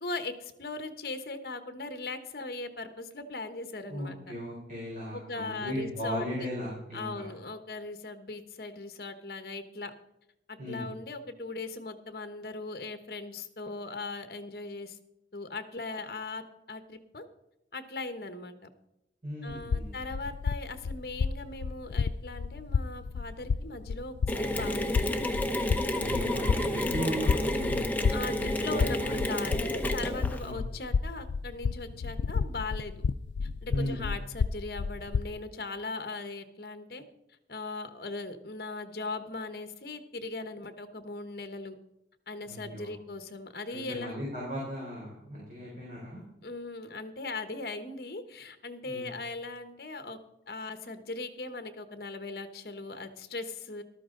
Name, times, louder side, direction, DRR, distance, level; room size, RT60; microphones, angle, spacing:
voice 1, 0.0-4.2 5.1-6.5 6.9-9.9 10.5-15.0 15.3-17.2 17.7-18.6 19.4-25.2 26.2-26.4 28.1-32.9 33.4-37.0 37.5-41.7 42.3-44.3 46.4-50.2 50.5-53.8, left 3 dB, 55° left, 9 dB, 1.1 m, -39 dB
voice 2, 3.9-7.3 10.6-10.9 19.2-19.9 25.9-29.1 30.4-30.6 33.7-34.0 42.5-42.9 43.7-46.2 48.9-49.1, equal, 45° right, -5 dB, 4.3 m, -37 dB
sound 1, 19.5-35.4, left 5 dB, 80° left, 0.3 m, -32 dB
Mechanisms, 24.3-30.5, left 1 dB, 10° left, 0.8 m, -30 dB
13.5 x 12.5 x 3.8 m, 0.89 s
head